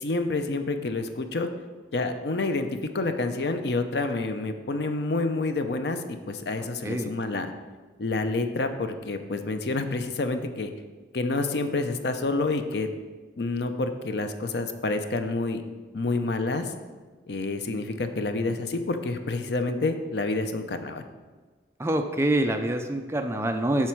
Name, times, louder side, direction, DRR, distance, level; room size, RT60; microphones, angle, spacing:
voice 1, 0.0-1.5 1.9-2.7 2.9-7.5 8.0-10.7 11.1-12.9 13.4-15.6 15.9-16.6 17.3-21.0, left 3 dB, 65° left, 8 dB, 0.6 m, -28 dB
voice 2, 6.6-7.1 21.8-23.9, right 1 dB, 15° right, 6 dB, 0.4 m, -26 dB
7.4 x 5.9 x 4.6 m, 1.4 s
head